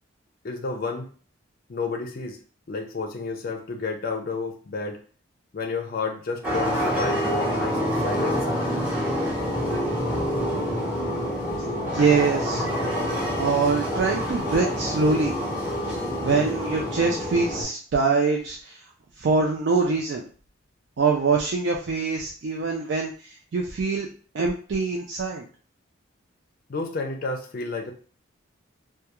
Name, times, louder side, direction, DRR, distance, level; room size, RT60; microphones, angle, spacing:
voice 1, 0.4-1.1 1.7-2.4 2.7-5.0 5.5-8.4 26.7-27.9, left 4 dB, 45° left, 4 dB, 0.4 m, -31 dB
sound 1, 6.4-17.6, equal, 5° right, 0.7 m, -27 dB
voice 2, 11.9-12.6 13.4-15.3 15.9-16.0 16.2-18.8 19.2-20.2 21.0-24.1 24.3-25.4, right 4 dB, 60° right, 0 dB, 0.3 m, -24 dB
2.3 x 2.2 x 2.9 m, 0.41 s
head